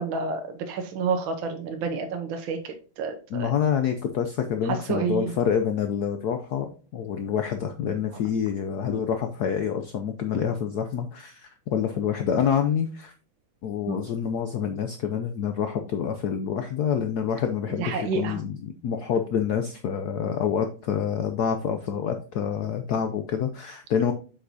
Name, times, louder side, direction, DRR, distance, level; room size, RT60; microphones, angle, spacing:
voice 1, 0.0-3.5 4.6-5.3 13.9-14.0 17.8-18.4, right 5 dB, 75° right, 5 dB, 1.7 m, -29 dB
voice 2, 3.3-13.1 13.6-24.1, left 7 dB, 65° left, 7 dB, 1.0 m, -27 dB
8.2 x 5.9 x 2.7 m, 0.38 s
omnidirectional pair, 2.3 m